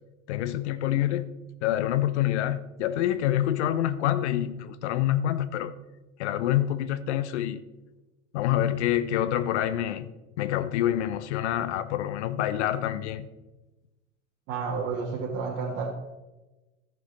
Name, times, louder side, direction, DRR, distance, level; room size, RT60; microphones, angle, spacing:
voice 1, 0.3-1.3 1.6-5.7 6.2-7.6 8.3-10.1 10.4-13.3, left 12 dB, 65° left, 0.8 m, -26 dB
voice 2, 14.5-15.9, right 5 dB, 50° right, 1.8 m, -30 dB
14.0 x 6.9 x 3.9 m
figure-of-eight pair, 75°, 37 cm